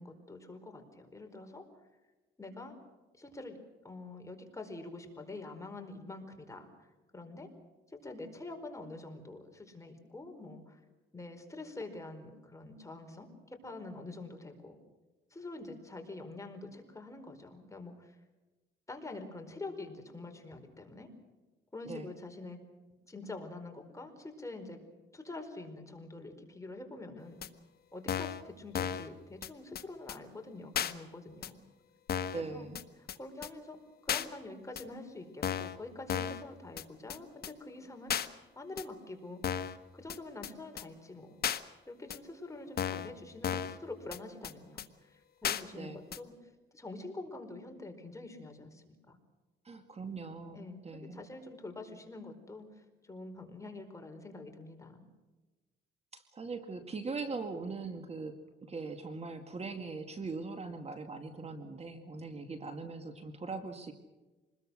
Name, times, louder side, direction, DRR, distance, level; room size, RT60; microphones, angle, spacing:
voice 1, 0.0-1.6 2.4-2.7 3.2-3.6 3.8-6.9 7.1-7.5 7.9-10.8 11.1-14.8 15.3-18.1 18.9-21.1 21.7-22.6 23.1-24.8 25.1-27.4 27.9-31.6 32.3-32.7 33.2-33.8 34.0-38.2 38.6-39.4 39.9-41.4 41.9-46.3 46.7-49.2 50.5-52.7 53.0-55.1, left 2 dB, 15° left, 4 dB, 4.7 m, -46 dB
sound 1, 27.4-27.5 28.1-28.4 28.7-29.1 29.4-29.5 29.7-29.8 30.1-30.2 30.7-30.9 31.4-31.5 32.1-32.4 32.7-32.8 33.1-33.2 33.4-33.5 34.1-34.3 34.8-34.9 35.4-35.8 36.1-36.4 36.8-36.9 37.1-37.2 37.4-37.5 38.1-38.3 38.8-38.9 39.4-39.8 40.1-40.2 40.4-40.5 40.8-40.9 41.4-41.6 42.1-42.2 42.8-43.1 43.4-43.8 44.1-44.2 44.4-44.5 44.8-44.9 45.4-45.6 46.1-46.2, left 8 dB, 55° left, 1.3 m, -34 dB
voice 2, 32.3-32.8 45.7-46.0 49.6-51.3 56.1-63.9, right 4 dB, 35° right, 7 dB, 2.2 m, -41 dB
26.0 x 21.0 x 6.4 m, 1.2 s
cardioid pair, 100°, 19 cm